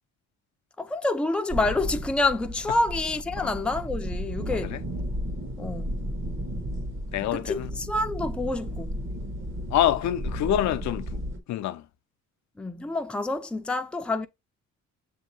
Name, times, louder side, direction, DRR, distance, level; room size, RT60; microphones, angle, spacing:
voice 1, 0.8-4.8 5.6-5.9 7.3-8.9 12.6-14.3, left 2 dB, 5° left, 0.4 m, -28 dB
sound 1, 1.5-11.4, equal, 45° right, 1.1 m, -34 dB
voice 2, 7.1-7.7 9.7-11.1 11.5-11.8, left 12 dB, 70° left, 0.4 m, -26 dB
7.0 x 2.7 x 2.7 m
cardioid pair, 90°, 30 cm